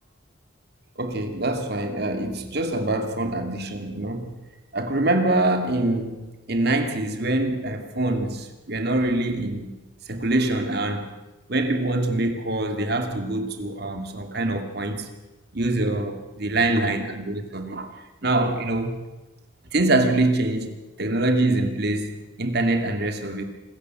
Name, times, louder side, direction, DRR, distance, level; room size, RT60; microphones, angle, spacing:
voice 1, 1.0-4.3 4.7-9.7 10.1-11.1 11.5-15.1 15.5-17.9 18.2-19.0 19.7-23.4, right 2 dB, 55° right, 2.5 m, -24 dB
26.0 x 14.0 x 7.9 m
head